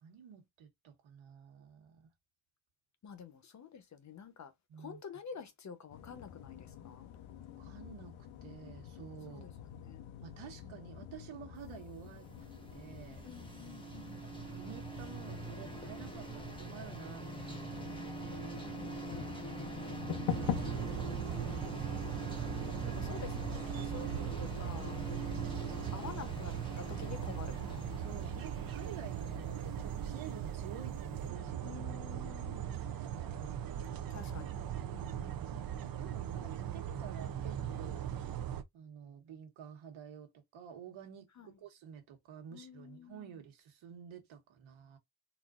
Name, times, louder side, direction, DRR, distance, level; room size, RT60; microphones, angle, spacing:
voice 1, 0.0-2.0 4.7-5.0 7.6-8.1 8.4-9.6 10.2-12.3 12.7-13.3 14.2-18.6 18.9-19.9 20.8-22.2 25.1-25.5 28.0-31.7 32.8-33.7 34.7-38.1 38.7-45.0, right 7 dB, 90° right, 1.4 m, -51 dB
voice 2, 3.0-4.5 4.8-7.1 9.3-9.5 9.8-10.0 13.2-14.2 18.4-18.9 22.9-25.0 25.4-27.8 31.6-32.7 34.1-34.5 34.9-35.3 41.4-41.5 42.5-43.4, left 6 dB, 40° left, 0.8 m, -49 dB
sound 1, 5.9-25.4, left 9 dB, 80° left, 0.8 m, -46 dB
sound 2, 11.9-30.9, right 1 dB, 10° left, 0.9 m, -44 dB
sound 3, 20.3-38.6, right 9 dB, 50° right, 0.6 m, -39 dB
4.1 x 2.5 x 2.4 m
cardioid pair, 140°, 46 cm